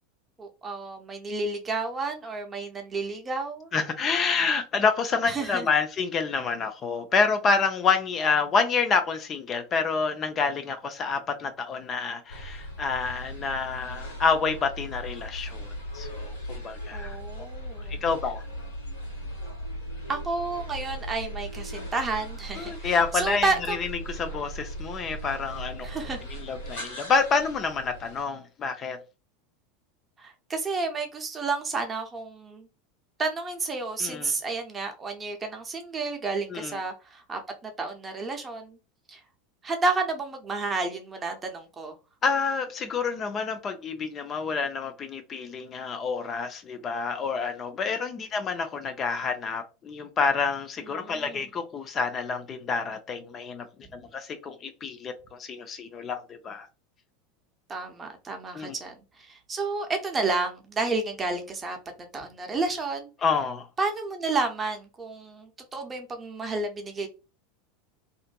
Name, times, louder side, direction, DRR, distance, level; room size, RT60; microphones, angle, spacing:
voice 1, 0.4-3.7 5.3-5.7 16.9-18.0 20.1-23.8 25.8-26.2 30.2-32.7 33.2-38.8 39.1-39.2 39.6-42.0 50.9-51.4 57.7-61.8 62.1-63.1 63.8-67.1, right 3 dB, 20° right, 0.7 m, -31 dB
voice 2, 3.7-17.2 17.9-18.4 22.6-25.9 26.3-29.0 34.0-34.3 36.5-36.8 42.2-53.7 53.9-56.7 58.5-58.7 63.2-63.7, left 5 dB, 35° left, 0.4 m, -28 dB
sound 1, 12.3-28.2, equal, 80° left, 1.2 m, -38 dB
2.5 x 2.5 x 2.2 m
hypercardioid pair, 85°, 0 cm